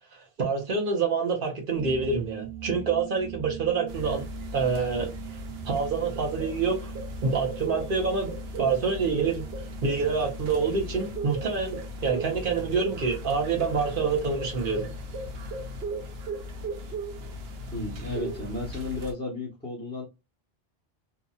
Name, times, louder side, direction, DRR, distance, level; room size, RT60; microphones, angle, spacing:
voice 1, 0.4-4.2 4.5-5.1 5.7-6.9 7.2-8.3 8.6-9.4 9.8-14.9, right 5 dB, 60° right, 1.1 m, -27 dB
sound 1, 1.7-18.8, right 11 dB, 40° right, 1.2 m, -44 dB
sound 2, 3.9-19.1, right 1 dB, 75° right, 0.9 m, -37 dB
voice 2, 17.7-20.0, left 2 dB, 5° left, 0.9 m, -33 dB
2.8 x 2.6 x 2.2 m
omnidirectional pair, 1.0 m